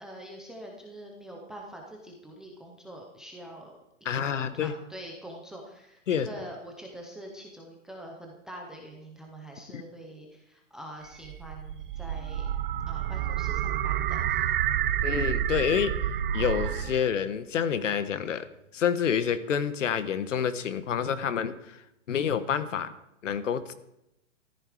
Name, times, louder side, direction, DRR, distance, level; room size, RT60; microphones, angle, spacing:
voice 1, 0.0-3.7 4.1-12.5 12.9-14.6, right 1 dB, ahead, 0 dB, 0.5 m, -44 dB
voice 2, 4.0-4.7 6.1-6.3 9.7-9.8 15.0-16.0 16.3-18.5 18.7-21.8 22.1-22.9 23.2-23.7, left 8 dB, 70° left, 12 dB, 1.5 m, -28 dB
sound 1, 11.1-17.2, right 10 dB, 45° right, 0.7 m, -29 dB
14.0 x 13.5 x 4.9 m, 0.84 s
hypercardioid pair, 155°, 39 cm